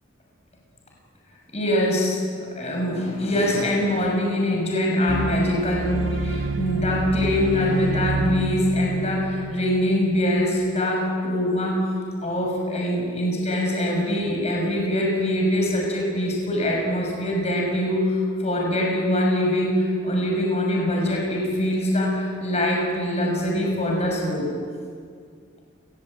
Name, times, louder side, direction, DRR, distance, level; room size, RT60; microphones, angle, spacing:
voice 1, 1.5-11.8 12.2-24.5, left 1 dB, 35° left, -1 dB, 6.4 m, -23 dB
sound 1, 5.1-10.4, right 3 dB, 85° right, 1.2 m, -29 dB
29.5 x 20.0 x 8.8 m, 2.2 s
head